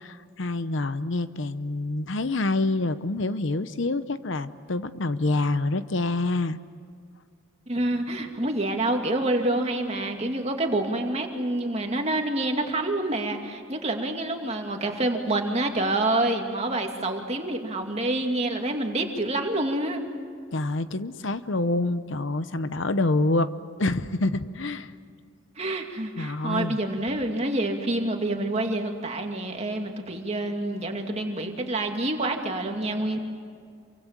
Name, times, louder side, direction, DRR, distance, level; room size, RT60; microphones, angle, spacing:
voice 1, 0.0-6.6 20.5-23.5 23.8-24.9 26.2-26.8, left 2 dB, 60° left, 13 dB, 0.8 m, -27 dB
voice 2, 7.7-20.0 25.6-33.2, right 2 dB, 30° right, 3 dB, 2.4 m, -27 dB
28.0 x 24.5 x 7.5 m, 2.2 s
head